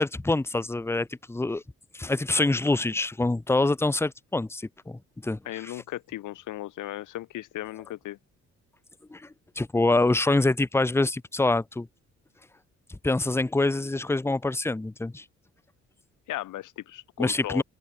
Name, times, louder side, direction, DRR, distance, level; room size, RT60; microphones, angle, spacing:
voice 1, 0.0-1.6 1.9-5.8 9.1-9.3 9.6-11.9 12.9-15.2 17.2-17.6, left 2 dB, 10° left, 0.8 m, -25 dB
voice 2, 5.5-8.2 16.3-17.6, left 15 dB, 85° left, 3.5 m, -36 dB
open air
cardioid pair, 90°, 30 cm